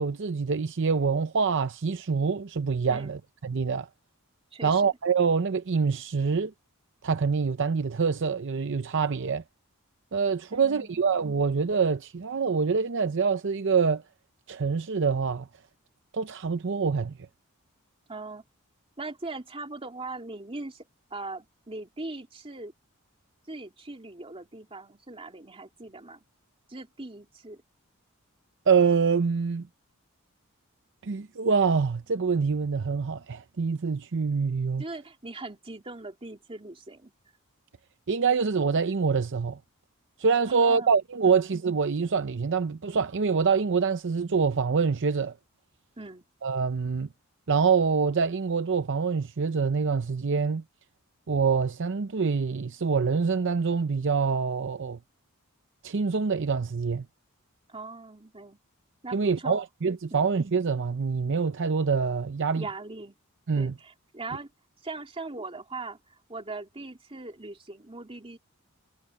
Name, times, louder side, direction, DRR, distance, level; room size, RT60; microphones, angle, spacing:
voice 1, 0.0-3.9 4.6-6.5 7.0-9.4 10.1-14.0 14.5-15.5 16.1-17.1 28.7-29.7 31.0-34.8 38.1-39.6 40.2-45.3 46.4-47.1 47.5-50.6 51.3-55.0 55.8-57.1 59.1-62.7 63.5-63.7, right 5 dB, 60° right, 0.6 m, -25 dB
voice 2, 2.9-3.2 4.5-5.0 10.5-11.0 18.1-18.4 19.0-22.7 23.5-26.2 26.7-27.6 34.8-37.1 40.5-40.9 41.2-41.4 46.0-46.2 57.7-58.6 59.0-59.6 60.1-60.3 62.6-63.2 63.6-64.5 64.8-68.4, right 3 dB, 25° right, 2.8 m, -40 dB
head